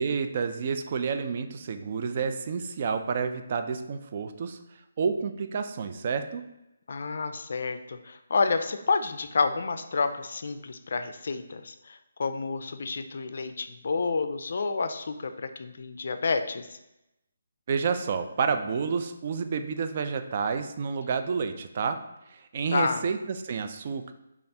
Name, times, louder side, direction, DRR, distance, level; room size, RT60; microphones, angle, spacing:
voice 1, 0.0-4.6 5.0-6.4 17.7-22.0 22.3-24.1, right 5 dB, 40° right, 8 dB, 0.3 m, -29 dB
voice 2, 6.9-16.8 22.7-23.0, left 4 dB, 60° left, 9 dB, 0.3 m, -29 dB
5.1 x 2.4 x 2.8 m, 0.90 s
hypercardioid pair, 160°, 0 cm